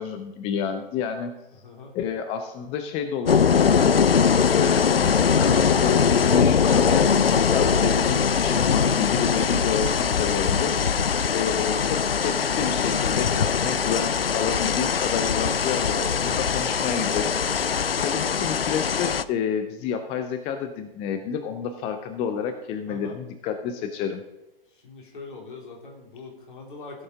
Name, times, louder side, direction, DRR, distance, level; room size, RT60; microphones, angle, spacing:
voice 1, 0.0-1.3 1.9-3.9 4.5-5.1 5.4-17.3 17.6-24.2, left 7 dB, 20° left, 9 dB, 0.6 m, -30 dB
voice 2, 1.5-2.0 17.8-18.1 22.9-23.2 24.7-27.0, left 3 dB, 60° left, 0 dB, 3.3 m, -43 dB
sound 1, 3.3-19.2, left 6 dB, 80° left, 0.5 m, -21 dB
16.0 x 7.8 x 3.7 m, 0.95 s
figure-of-eight pair, 110°, 29 cm